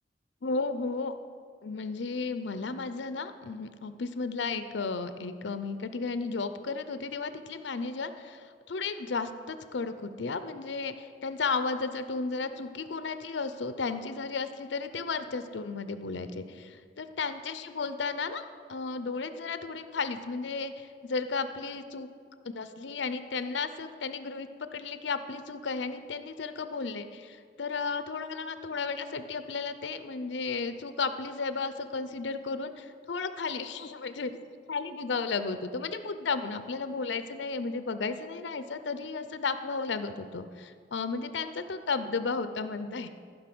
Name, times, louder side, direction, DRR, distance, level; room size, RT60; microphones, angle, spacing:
voice 1, 0.4-1.1 1.6-22.1 22.4-34.4 34.7-43.1, left 4 dB, 75° left, 11 dB, 0.6 m, -34 dB
14.0 x 5.3 x 6.0 m, 2.1 s
head